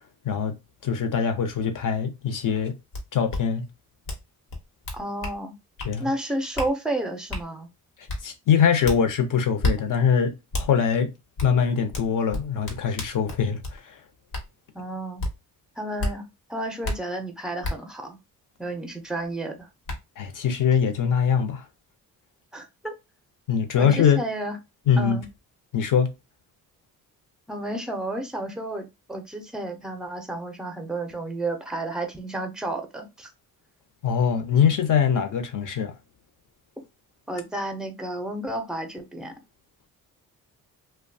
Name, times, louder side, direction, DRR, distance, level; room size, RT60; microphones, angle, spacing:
voice 1, 0.8-2.8 3.1-3.6 5.8-6.1 8.2-10.3 10.6-11.1 11.4-13.8 20.2-21.6 23.5-24.2 24.9-25.2 25.7-26.1 34.0-35.9, left 7 dB, 60° left, 0.7 m, -22 dB
sound 1, 2.9-3.0 3.3-3.4 4.1-4.2 4.5-5.4 5.8-5.9 6.6-6.7 7.3-7.4 8.1-8.2 8.8-9.0 9.6-9.8 10.5-10.7 11.4-11.5 11.9-13.8 14.3-14.5 15.2-15.3 16.0-16.1 16.8-17.0 17.6-17.7 19.2-19.3 19.9-20.0, left 2 dB, 75° left, 1.1 m, -29 dB
voice 2, 4.9-5.5 6.0-7.7 14.7-15.2 15.8-18.2 18.6-19.7 22.5-22.9 23.8-24.6 25.0-25.3 27.5-33.3 37.3-39.3, right 1 dB, ahead, 0.5 m, -31 dB
2.7 x 2.2 x 2.6 m
cardioid pair, 110°, 36 cm